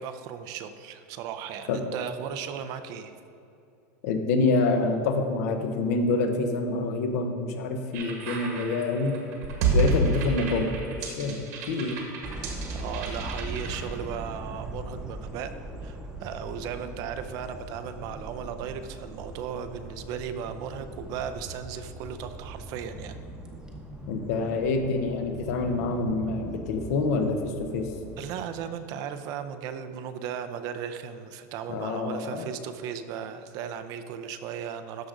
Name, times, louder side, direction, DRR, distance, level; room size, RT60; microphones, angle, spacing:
voice 1, 0.0-3.1 12.7-15.5 15.8-23.2 28.2-35.1, right 8 dB, 45° right, 9 dB, 0.5 m, -36 dB
voice 2, 4.0-9.2 9.7-11.4 11.7-12.0 24.1-27.9 31.7-32.5, left 3 dB, 70° left, 6 dB, 0.9 m, -27 dB
sound 1, 7.9-13.8, right 3 dB, 70° right, 1.7 m, -29 dB
sound 2, 12.2-28.3, right 1 dB, 10° right, 0.8 m, -40 dB
13.0 x 5.0 x 3.8 m, 2.6 s
supercardioid pair, 155°, 9 cm